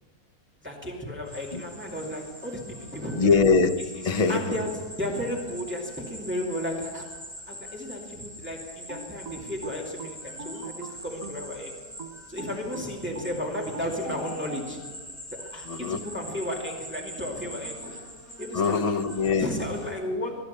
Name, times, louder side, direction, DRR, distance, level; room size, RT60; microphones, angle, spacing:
voice 1, 0.6-3.2 4.0-4.7 5.0-7.2 7.5-11.8 12.3-14.9 15.3-18.0 18.4-18.9 19.4-20.4, left 1 dB, 5° right, 2.3 m, -34 dB
sound 1, 1.3-19.9, equal, 10° left, 7.1 m, -43 dB
voice 2, 3.1-3.7 4.0-4.6 15.7-16.0 18.5-19.5, left 4 dB, 35° left, 0.6 m, -22 dB
sound 2, 8.9-11.5 12.0-14.7, right 2 dB, 60° right, 1.5 m, -41 dB
18.0 x 11.5 x 6.7 m
omnidirectional pair, 1.7 m